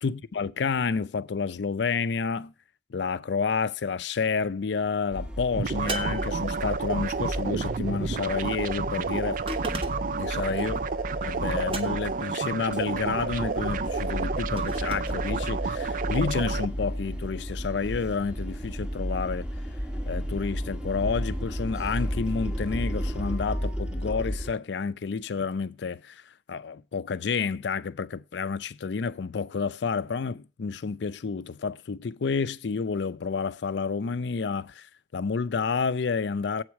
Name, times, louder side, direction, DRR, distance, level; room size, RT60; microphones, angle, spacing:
voice 1, 0.0-2.5 2.9-9.4 10.2-10.8 11.2-19.5 20.1-26.2 26.5-36.6, left 5 dB, 75° left, 0.5 m, -30 dB
sound 1, 5.1-12.2 12.5-24.5, equal, 5° right, 1.0 m, -33 dB
sound 2, 5.6-16.7, right 5 dB, 45° right, 0.3 m, -30 dB
sound 3, 5.9-7.0 9.5-10.2 11.7-12.3 14.6-15.2, right 1 dB, 30° right, 1.0 m, -36 dB
8.1 x 4.7 x 7.0 m
head